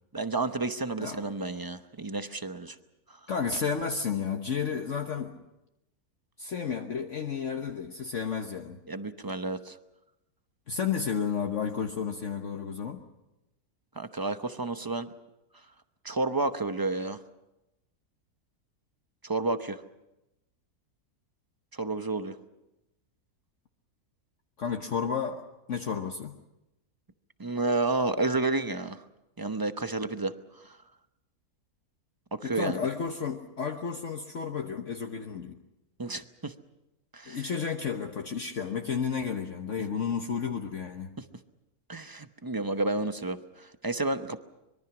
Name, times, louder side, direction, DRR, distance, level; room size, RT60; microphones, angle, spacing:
voice 1, 0.1-2.8 8.9-9.8 14.0-15.1 16.0-17.2 19.2-19.8 21.8-22.4 27.4-29.0 29.4-30.3 30.7-30.8 32.3-32.9 36.0-36.5 37.1-37.5 41.9-44.4, right 2 dB, 20° right, 10 dB, 0.6 m, -31 dB
voice 2, 3.3-5.3 6.4-8.8 10.7-13.0 24.6-26.4 32.4-35.6 37.3-41.1, left 6 dB, 55° left, 4 dB, 1.4 m, -32 dB
24.5 x 22.5 x 6.1 m, 0.95 s
omnidirectional pair, 1.6 m